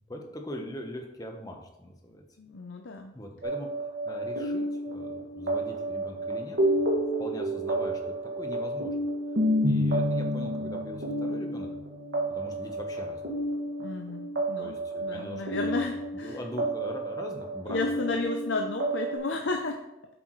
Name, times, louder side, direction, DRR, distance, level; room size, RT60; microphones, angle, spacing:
voice 1, 0.1-2.2 3.1-3.7 4.0-6.9 7.2-8.0 8.4-8.9 9.6-11.7 12.3-13.3 14.6-15.8 16.2-17.8, left 1 dB, 20° left, 2 dB, 1.1 m, -41 dB
voice 2, 2.4-3.1 13.8-16.4 17.7-19.8, left 3 dB, 90° left, 3 dB, 0.6 m, -33 dB
sound 1, 3.4-19.2, right 1 dB, 85° right, 2.1 m, -30 dB
8.4 x 7.8 x 3.2 m, 0.91 s
head